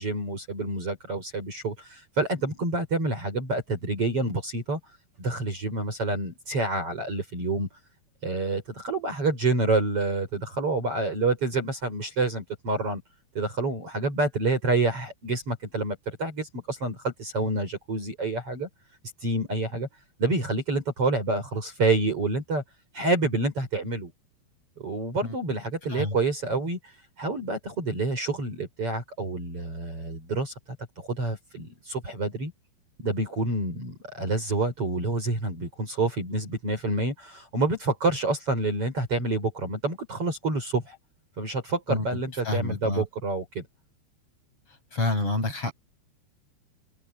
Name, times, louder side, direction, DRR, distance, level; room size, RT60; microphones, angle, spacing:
voice 1, 0.0-4.8 5.2-7.7 8.2-13.0 13.4-18.7 19.2-19.9 20.2-22.6 22.9-24.1 24.8-26.9 27.2-30.5 31.0-32.5 33.0-41.0 41.4-43.7, right 2 dB, 30° right, 5.7 m, -28 dB
voice 2, 42.4-43.1 44.9-45.7, left 2 dB, 30° left, 7.8 m, -28 dB
open air
omnidirectional pair, 5.2 m